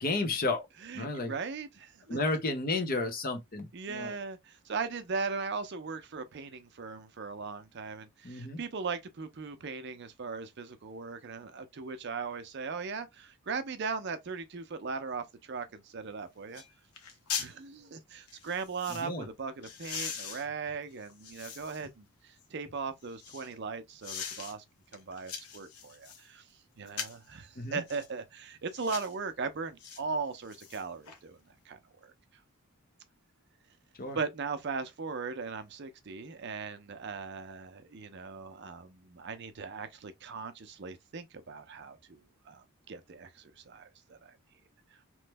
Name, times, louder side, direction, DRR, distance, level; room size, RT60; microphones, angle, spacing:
voice 1, 0.0-0.7 0.9-1.3 2.1-4.2 8.2-8.6 18.9-19.3 27.6-27.8 34.0-34.2, left 3 dB, 40° left, 0.7 m, -32 dB
voice 2, 0.8-2.2 3.7-16.6 17.4-24.6 24.9-26.4 26.8-31.4 31.7-32.1 34.1-42.2 42.5-44.4, right 4 dB, 50° right, 0.5 m, -38 dB
sound 1, 16.0-16.1 16.5-16.7 16.9-17.5 18.3-19.1 19.6-21.9 22.4-23.5 24.0-24.5 24.9-26.2 26.9-27.3 27.9-28.1 28.7-29.1 29.8-30.0 30.4-31.2 31.5-31.6, left 6 dB, 85° left, 0.9 m, -41 dB
3.0 x 2.0 x 3.4 m
head